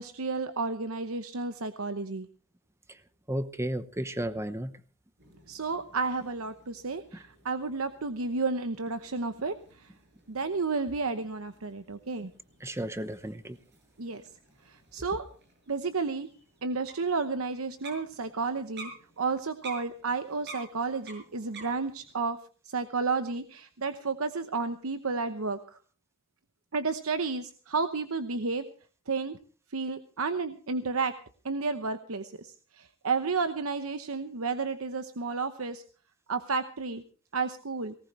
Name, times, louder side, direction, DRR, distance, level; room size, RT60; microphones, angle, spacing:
voice 1, 0.0-2.3 5.5-9.9 10.3-12.3 14.0-14.2 14.6-15.2 15.7-16.3 16.6-18.9 19.2-22.4 22.6-25.8 26.7-28.6 29.1-29.4 29.7-31.1 31.4-35.8 36.3-37.0 37.3-38.0, right 4 dB, 75° right, 0.9 m, -32 dB
voice 2, 3.3-4.7 12.6-13.6, right 1 dB, 10° right, 0.9 m, -33 dB
sound 1, 5.2-22.1, right 3 dB, 55° right, 5.9 m, -52 dB
18.5 x 18.5 x 3.2 m
head